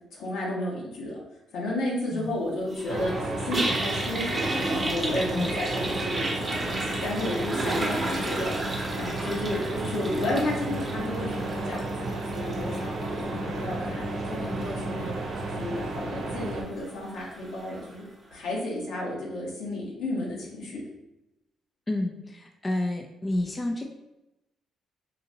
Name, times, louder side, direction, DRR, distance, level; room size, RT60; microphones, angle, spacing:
voice 1, 0.1-1.2 1.5-12.9 13.2-15.1 15.5-18.0 18.3-20.8, left 1 dB, 80° left, -4 dB, 1.2 m, -32 dB
Toilet flush, 2.7-17.9, right 2 dB, 30° right, 0.8 m, -34 dB
sound 1, 2.9-16.6, right 2 dB, 60° right, 0.7 m, -32 dB
voice 2, 21.9-23.8, left 1 dB, 25° left, 2 dB, 0.4 m, -29 dB
3.9 x 2.6 x 2.8 m, 0.92 s
cardioid pair, 90°, 0 cm